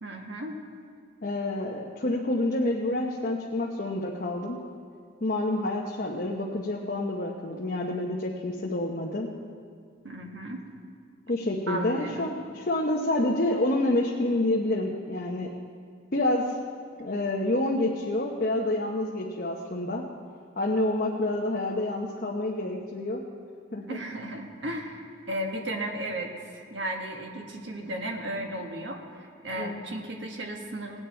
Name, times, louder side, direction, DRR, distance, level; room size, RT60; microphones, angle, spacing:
voice 1, 0.0-0.6 10.0-10.6 11.7-12.3 23.9-31.0, right 1 dB, 75° right, 2 dB, 1.5 m, -35 dB
voice 2, 1.2-4.6 5.2-9.3 11.3-15.5 16.1-16.4 17.0-20.0 20.6-23.2 23.7-24.0 29.6-29.8, left 1 dB, 50° left, -2 dB, 0.9 m, -28 dB
18.5 x 9.1 x 4.5 m, 2.1 s
head